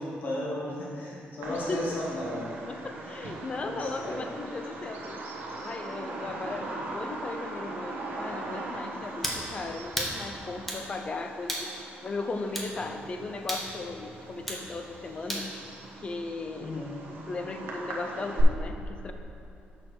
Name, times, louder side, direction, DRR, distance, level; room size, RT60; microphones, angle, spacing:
voice 1, 0.0-2.4 3.5-4.3 6.2-6.4 16.6-17.0, left 1 dB, 60° left, -5 dB, 1.6 m, -35 dB
Bird vocalization bird call bird song, 1.4-18.4, right 3 dB, 80° right, 1.1 m, -40 dB
voice 2, 1.5-1.8 2.5-5.2 5.6-15.5 16.0-16.7 17.3-19.1, left 3 dB, 30° left, 6 dB, 0.5 m, -37 dB
sound 1, 9.2-9.4 10.0-10.2 10.7-10.9 11.5-11.7 12.5-12.7 13.5-13.7 14.5-14.6 15.3-15.5, equal, 5° left, 1.0 m, -32 dB
6.4 x 6.2 x 4.6 m, 2.9 s
cardioid pair, 140°, 4 cm